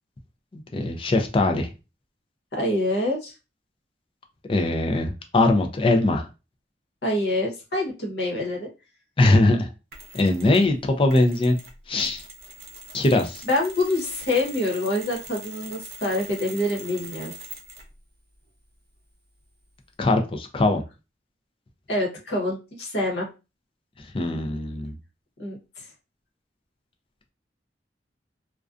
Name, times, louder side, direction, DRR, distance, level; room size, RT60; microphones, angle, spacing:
voice 1, 0.5-1.7 4.5-6.3 9.2-9.7 10.1-11.6 11.9-12.2 12.9-13.4 20.0-20.8 24.0-25.0, left 2 dB, 30° left, 5 dB, 0.4 m, -21 dB
voice 2, 2.5-3.3 7.0-8.7 13.1-13.2 13.4-17.3 21.9-23.3 25.4-25.6, left 1 dB, 65° left, -1 dB, 0.9 m, -26 dB
Mechanisms, 9.9-10.7 11.1-18.0, right 2 dB, 55° right, 0.6 m, -42 dB
2.4 x 2.2 x 2.4 m, 0.29 s
head